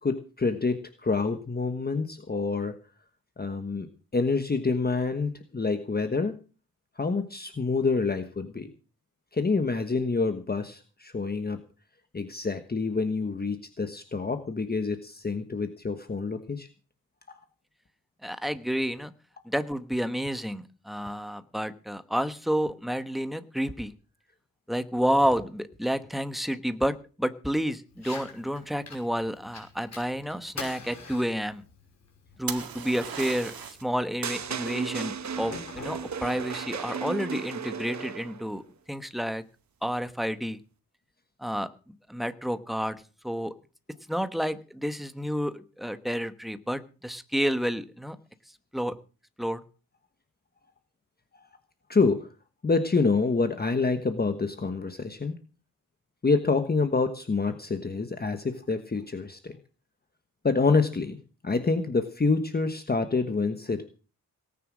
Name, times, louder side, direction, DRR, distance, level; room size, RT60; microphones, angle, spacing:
voice 1, 0.0-2.7 3.4-3.9 4.1-6.3 7.0-8.7 9.3-11.6 12.1-16.7 51.9-52.3 52.6-55.4 56.2-59.6 60.4-61.2 61.4-63.8, left 4 dB, 25° left, 8 dB, 1.3 m, -27 dB
voice 2, 18.2-19.1 19.5-23.9 24.7-31.6 32.4-38.6 38.9-39.4 39.8-40.6 41.4-43.0 43.2-43.5 44.1-48.2 48.7-48.9 49.4-49.6, equal, ahead, 11 dB, 1.1 m, -30 dB
Fire, 27.9-36.9, left 4 dB, 50° left, 5.9 m, -46 dB
sound 1, 32.5-33.9 37.6-38.1, right 7 dB, 75° right, 2.1 m, -37 dB
sound 2, 34.2-38.5, right 6 dB, 50° right, 1.0 m, -35 dB
18.5 x 9.7 x 6.2 m, 0.36 s
wide cardioid pair, 165°, 35 cm